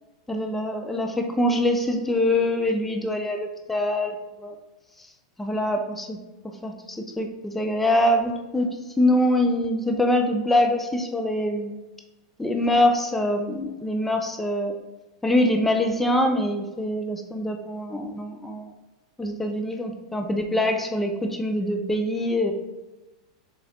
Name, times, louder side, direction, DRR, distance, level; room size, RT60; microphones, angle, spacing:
voice 1, 0.3-4.6 5.4-6.2 6.4-8.7 9.0-11.8 12.4-14.7 15.2-18.7 19.2-22.5, left 1 dB, 5° left, 3 dB, 0.4 m, -24 dB
3.7 x 2.8 x 2.9 m, 1.1 s
hypercardioid pair, 95°, 3 cm